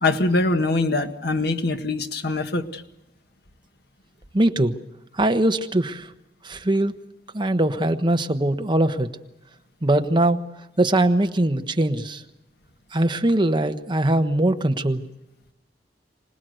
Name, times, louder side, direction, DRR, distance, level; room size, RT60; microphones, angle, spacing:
voice 1, 0.0-2.8, left 2 dB, 65° left, 7 dB, 1.6 m, -23 dB
voice 2, 4.3-4.7 5.1-6.1 6.4-6.9 7.3-9.1 9.8-10.4 10.8-12.2 12.9-15.0, right 1 dB, 25° right, 6 dB, 1.2 m, -21 dB
25.5 x 19.0 x 7.9 m, 0.91 s
head